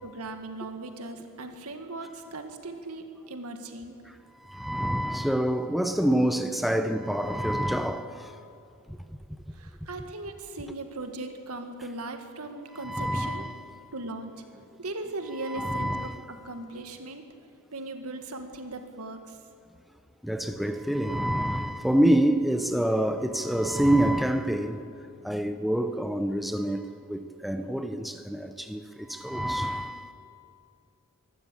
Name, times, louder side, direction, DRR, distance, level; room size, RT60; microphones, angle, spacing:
voice 1, 0.0-4.0 9.5-13.5 13.9-14.3 14.8-17.2 17.7-19.4, right 2 dB, 80° right, 1.9 m, -38 dB
voice 2, 4.4-8.3 12.8-13.6 15.4-16.2 20.2-24.8 25.2-30.1, right 1 dB, ahead, 0.8 m, -27 dB
23.5 x 13.0 x 8.5 m
head